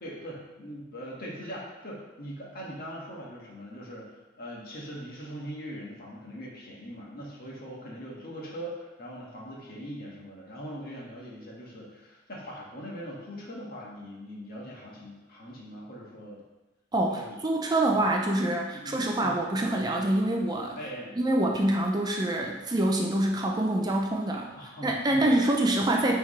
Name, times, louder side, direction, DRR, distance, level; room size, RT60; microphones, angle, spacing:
voice 1, 0.0-16.4 17.1-17.4 17.9-18.0 18.7-19.4 20.7-21.2 24.5-25.4, equal, 50° left, -4 dB, 1.5 m, -41 dB
voice 2, 16.9-20.8 21.2-24.5 24.8-26.2, right 1 dB, 20° right, 0 dB, 0.5 m, -26 dB
9.1 x 3.5 x 3.2 m, 1.1 s
head